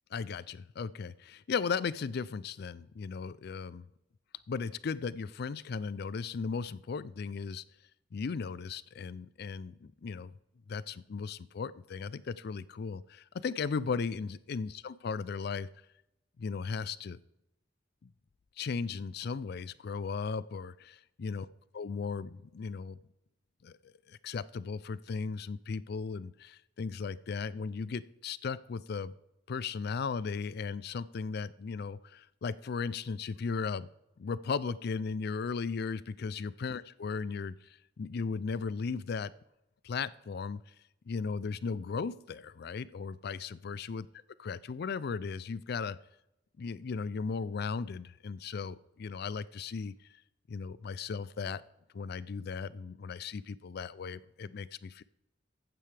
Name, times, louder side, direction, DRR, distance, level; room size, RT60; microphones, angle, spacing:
voice 1, 0.1-3.9 4.5-7.6 8.1-10.3 10.7-15.7 16.4-17.2 18.0-18.1 18.6-21.5 21.7-23.0 23.6-29.1 29.5-33.9 34.2-37.6 38.0-39.3 39.8-40.6 41.1-44.1 44.4-46.0 46.6-49.9 50.5-51.6 51.9-55.0, left 5 dB, 55° left, 18 dB, 0.4 m, -36 dB
14.5 x 9.0 x 3.4 m, 0.86 s
head